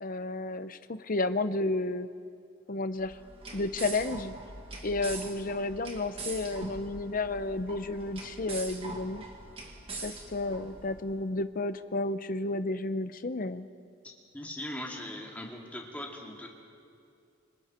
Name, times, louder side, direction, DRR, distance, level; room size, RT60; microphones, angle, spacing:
voice 1, 0.0-2.1 2.7-3.2 3.5-4.3 4.8-9.2 10.0-13.6, left 2 dB, 40° left, 11 dB, 0.7 m, -32 dB
sound 1, 3.0-11.1, right 3 dB, 25° right, 2.0 m, -43 dB
voice 2, 14.3-16.5, left 1 dB, 5° left, -1 dB, 2.3 m, -39 dB
28.0 x 25.5 x 4.4 m, 2.4 s
head